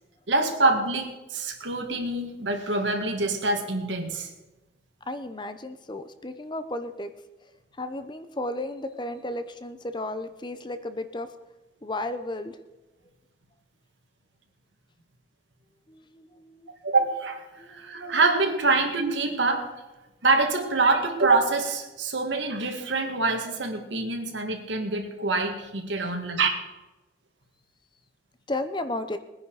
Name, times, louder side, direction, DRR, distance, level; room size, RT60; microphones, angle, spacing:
voice 1, 0.3-4.3 16.8-19.7 20.2-26.5, right 3 dB, 80° right, 4 dB, 2.2 m, -25 dB
voice 2, 5.0-7.1 7.7-11.3 11.8-12.6 15.9-16.7 17.6-18.2 26.0-26.2 28.5-29.2, left 1 dB, 25° left, 10 dB, 0.7 m, -34 dB
20.5 x 10.0 x 4.9 m, 1.1 s
head